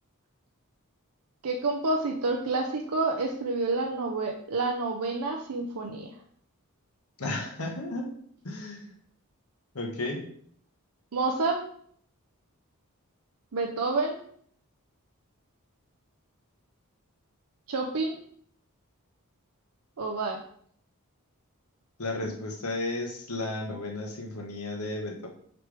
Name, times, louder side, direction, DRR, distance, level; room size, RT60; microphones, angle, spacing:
voice 1, 1.4-6.1 11.1-11.6 13.5-14.2 17.7-18.2 20.0-20.4, right 3 dB, 80° right, 2 dB, 0.6 m, -28 dB
voice 2, 7.2-8.1 8.4-8.9 9.7-10.2 22.0-25.3, left 2 dB, 75° left, 1 dB, 1.2 m, -33 dB
5.9 x 5.1 x 3.4 m, 0.62 s
head